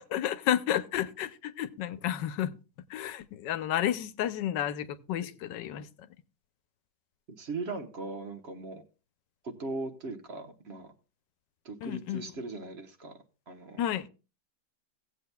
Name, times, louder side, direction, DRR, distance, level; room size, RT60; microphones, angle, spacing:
voice 1, 0.0-2.5 2.9-6.1 11.8-12.2 13.8-14.1, left 11 dB, 90° left, 1.3 m, -31 dB
voice 2, 7.4-8.8 9.4-10.9 11.6-13.8, right 3 dB, 40° right, 1.2 m, -39 dB
17.5 x 8.1 x 2.2 m
omnidirectional pair, 1.9 m